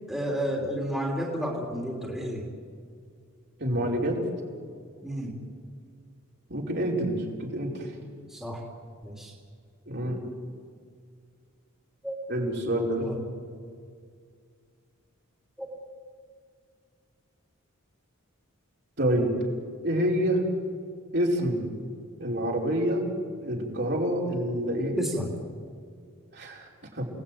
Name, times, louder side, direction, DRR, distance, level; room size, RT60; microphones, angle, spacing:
voice 1, 0.1-2.5 5.0-5.4 8.3-8.6 9.0-9.3 12.0-12.2 13.0-13.2 15.6-15.7 25.0-25.3, equal, ahead, -2 dB, 3.3 m, -31 dB
voice 2, 3.6-4.2 6.5-7.9 9.9-10.2 12.3-13.0 19.0-19.3 19.8-20.4 21.1-21.6 22.2-23.1 23.4-25.0 26.3-27.1, right 1 dB, 50° right, -2 dB, 4.9 m, -27 dB
30.0 x 19.0 x 9.4 m, 2.1 s
head